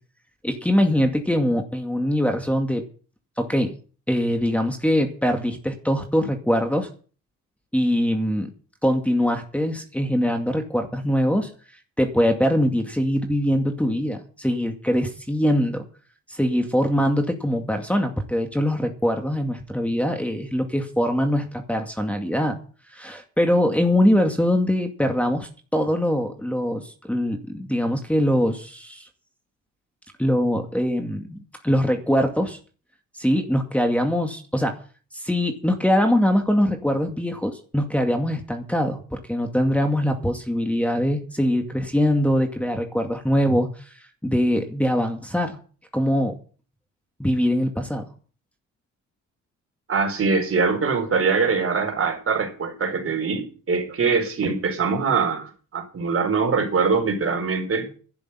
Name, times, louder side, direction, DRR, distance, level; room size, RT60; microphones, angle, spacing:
voice 1, 0.4-2.8 3.4-3.8 4.1-6.9 7.7-8.5 8.8-11.5 12.0-15.8 16.3-22.6 22.9-29.1 30.2-32.6 33.2-34.8 35.1-43.9 44.2-45.6 45.9-46.4 47.2-48.0, equal, 5° left, 2.2 m, -22 dB
voice 2, 49.9-57.9, right 5 dB, 45° right, 4.3 m, -23 dB
12.0 x 7.0 x 9.9 m
cardioid pair, 90°, 30 cm